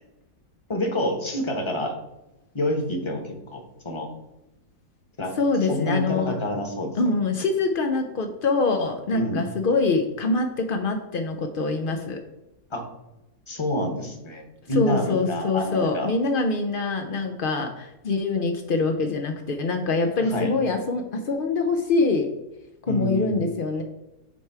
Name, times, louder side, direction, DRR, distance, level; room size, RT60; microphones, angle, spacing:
voice 1, 0.7-2.0 2.5-4.1 5.2-5.3 5.7-7.0 9.1-9.5 12.7-12.8 13.5-16.1 20.3-20.5 22.9-23.5, left 1 dB, 20° left, 3 dB, 0.9 m, -28 dB
voice 2, 5.4-6.4 7.0-12.2 14.7-22.3 22.9-23.8, left 3 dB, 75° left, 4 dB, 0.4 m, -24 dB
9.3 x 3.4 x 4.5 m, 0.95 s
omnidirectional pair, 1.7 m